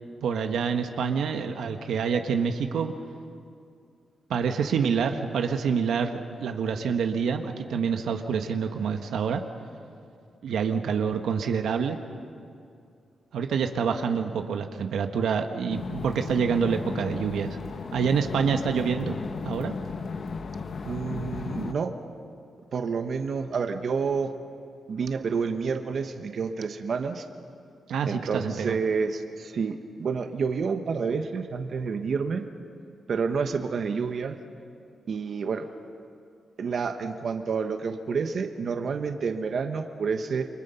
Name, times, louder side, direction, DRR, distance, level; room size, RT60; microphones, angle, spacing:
voice 1, 0.2-2.9 4.3-9.4 10.4-12.0 13.3-17.6 17.9-19.1 19.4-19.7 27.9-28.7, right 6 dB, 85° right, 6 dB, 1.3 m, -27 dB
sound 1, 15.7-21.7, left 4 dB, 50° left, 1.1 m, -35 dB
voice 2, 20.8-21.9 22.7-24.3 24.9-27.2 28.1-32.4 33.1-34.4 35.1-35.6 36.6-40.5, right 5 dB, 55° right, 7 dB, 1.2 m, -29 dB
29.5 x 23.5 x 5.7 m, 2.4 s
cardioid pair, 120°, 0 cm